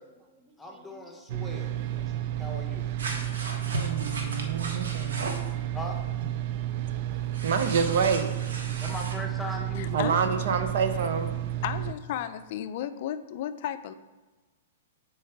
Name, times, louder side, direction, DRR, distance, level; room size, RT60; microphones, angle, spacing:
voice 1, 0.0-1.2 1.9-2.4 4.4-6.1, right 3 dB, 25° right, 6 dB, 0.7 m, -57 dB
voice 2, 0.6-1.8 2.4-2.9 5.7-6.0 8.8-10.0, left 1 dB, 5° left, 2 dB, 0.9 m, -38 dB
sound 1, 1.3-11.9, right 12 dB, 45° right, 0.4 m, -32 dB
sound 2, 3.0-5.5 7.3-9.2, right 2 dB, 90° right, 1.2 m, -36 dB
voice 3, 3.8-5.4 7.4-8.4 9.9-11.4, right 5 dB, 60° right, 8 dB, 0.8 m, -27 dB
voice 4, 9.7-10.2 11.6-13.9, left 10 dB, 50° left, 11 dB, 0.4 m, -34 dB
7.1 x 4.6 x 4.6 m, 1.2 s
hypercardioid pair, 155°, 0 cm